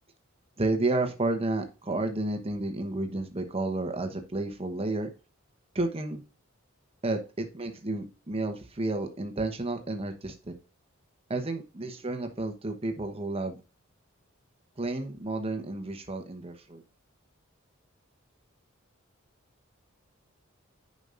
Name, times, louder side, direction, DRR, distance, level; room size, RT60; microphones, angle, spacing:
voice 1, 0.6-5.1 5.7-6.2 7.0-10.5 11.3-13.6 14.8-16.8, right 2 dB, 30° right, 5 dB, 1.1 m, -31 dB
9.9 x 5.3 x 2.6 m, 0.30 s
head